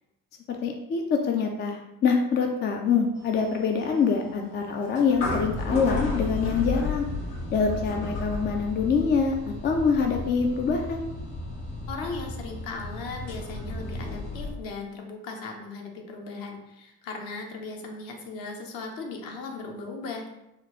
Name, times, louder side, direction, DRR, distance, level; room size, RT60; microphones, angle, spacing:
voice 1, 0.5-7.1 7.5-9.3 9.6-11.1, left 5 dB, 25° left, 2 dB, 0.4 m, -25 dB
sound 1, 3.2-14.5, left 2 dB, 70° left, 1.1 m, -33 dB
voice 2, 11.9-20.2, left 3 dB, 50° left, 1 dB, 0.8 m, -37 dB
3.7 x 2.3 x 3.6 m, 0.89 s
figure-of-eight pair, 40°, 43 cm